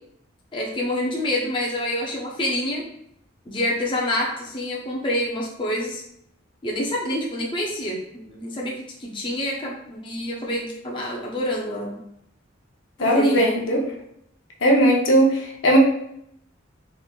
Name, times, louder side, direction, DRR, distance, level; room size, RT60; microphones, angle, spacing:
voice 1, 0.5-2.8 3.5-6.0 6.6-12.0 13.0-13.4, left 1 dB, 25° left, -3 dB, 0.5 m, -27 dB
voice 2, 13.0-13.8 14.6-15.8, right 1 dB, 65° left, -1 dB, 0.7 m, -18 dB
3.6 x 3.2 x 2.3 m, 0.73 s
head